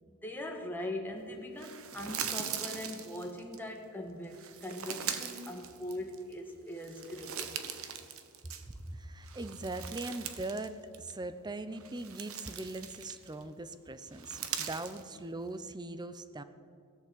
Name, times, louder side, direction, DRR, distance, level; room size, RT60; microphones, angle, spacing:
voice 1, 0.1-7.5, left 1 dB, 10° left, 1 dB, 1.5 m, -41 dB
sound 1, 1.6-3.6 4.3-6.3 6.7-8.9 9.2-10.7 10.9-11.1 11.7-13.4 14.1-15.0, right 8 dB, 70° right, 1.2 m, -41 dB
voice 2, 8.8-16.4, right 2 dB, 20° right, 12 dB, 0.7 m, -40 dB
17.0 x 11.0 x 7.7 m, 2.4 s
head